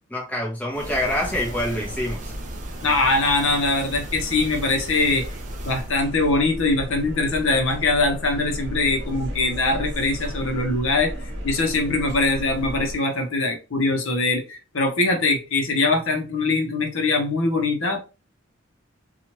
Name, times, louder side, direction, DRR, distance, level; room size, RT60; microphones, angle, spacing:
voice 1, 0.1-2.3, left 1 dB, 5° left, -2 dB, 0.7 m, -26 dB
sound 1, 0.7-5.9, right 2 dB, 35° right, 0.5 m, -39 dB
sound 2, 0.7-12.9, equal, 55° right, 0.9 m, -34 dB
voice 2, 2.8-5.3 5.6-11.1 11.4-18.0, left 3 dB, 70° left, 3 dB, 0.7 m, -22 dB
2.9 x 2.4 x 2.9 m, 0.32 s
head